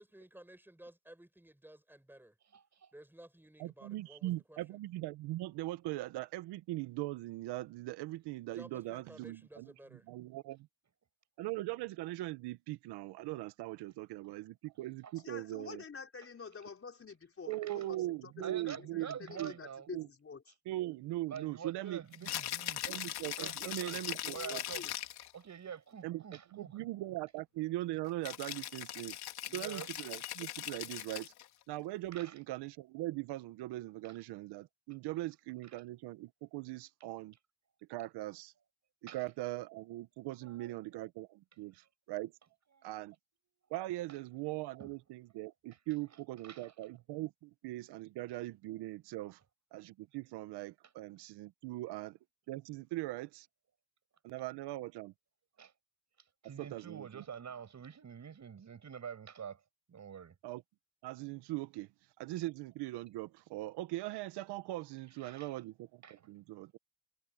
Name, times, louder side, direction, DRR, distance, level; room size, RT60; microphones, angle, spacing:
voice 1, 0.0-2.3 2.9-4.8 8.5-10.1, right 1 dB, 5° right, 5.5 m, -55 dB
voice 2, 2.5-2.9 14.2-14.3 15.0-15.1 17.7-17.8 18.4-19.9 21.3-22.9 23.4-24.0 24.3-24.8 25.3-26.8 29.5-29.9 32.1-32.4 34.0-34.2 35.7-35.8 39.1-39.2 40.4-40.8 42.8-42.9 44.8-44.9 46.4-46.7 55.6-55.7 56.4-59.6 59.9-60.3 65.2-65.6 66.0-66.3, right 7 dB, 45° right, 6.1 m, -47 dB
voice 3, 3.6-9.7 10.1-10.7 11.4-15.8 17.5-19.5 19.9-20.1 20.7-22.3 22.9-24.6 26.0-26.2 26.5-29.2 29.5-31.3 31.7-37.3 37.9-38.5 39.0-42.3 42.8-43.1 43.7-49.4 49.7-52.2 52.5-53.5 54.2-55.1 56.6-57.2 60.4-60.6 61.0-61.9 62.2-66.0 66.3-66.8, right 17 dB, 80° right, 1.2 m, -40 dB
voice 4, 15.2-20.5 24.1-24.9, left 5 dB, 35° left, 4.6 m, -48 dB
Rattle (instrument), 22.1-25.3 28.2-31.5, left 13 dB, 70° left, 3.6 m, -40 dB
supercardioid pair, 80°, 40 cm